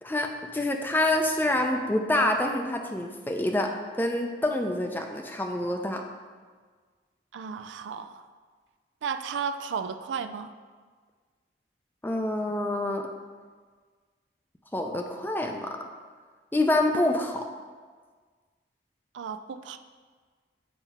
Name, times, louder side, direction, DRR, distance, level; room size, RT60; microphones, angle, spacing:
voice 1, 0.0-6.0 12.0-13.1 14.7-15.8 16.5-17.5, left 1 dB, 10° left, 4 dB, 0.4 m, -27 dB
voice 2, 7.3-8.3 9.0-10.5 19.1-19.8, right 6 dB, 90° right, 9 dB, 0.4 m, -34 dB
7.2 x 5.6 x 3.5 m, 1.5 s
head